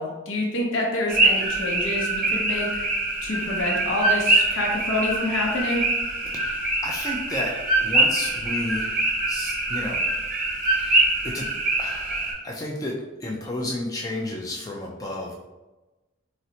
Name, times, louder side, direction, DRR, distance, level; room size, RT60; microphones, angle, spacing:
voice 1, 0.0-2.8 3.2-5.8, left 1 dB, 75° left, -1 dB, 0.7 m, -27 dB
sound 1, 1.1-12.3, right 2 dB, 45° right, 0.6 m, -24 dB
voice 2, 6.3-7.5 7.8-8.9 9.3-10.0 10.6-11.5 11.8-12.9 13.2-15.3, left 1 dB, 20° left, -2 dB, 0.3 m, -32 dB
3.8 x 2.1 x 2.7 m, 1.1 s
head